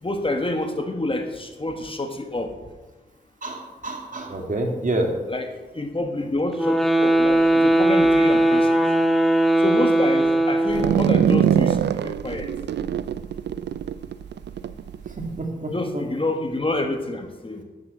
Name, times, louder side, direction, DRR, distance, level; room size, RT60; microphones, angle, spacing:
voice 1, 0.0-2.5 5.3-5.5 5.7-8.8 9.6-11.8 12.0-12.5 15.7-17.6, left 2 dB, 30° left, 5 dB, 1.4 m, -27 dB
voice 2, 3.4-5.1 15.2-16.0, right 2 dB, 50° right, 2 dB, 2.3 m, -28 dB
sound 1, 6.5-11.1, right 1 dB, ahead, 1.6 m, -19 dB
sound 2, 10.7-15.4, right 9 dB, 85° right, 0.4 m, -23 dB
8.6 x 7.9 x 7.3 m, 1.2 s
cardioid pair, 50°, 17 cm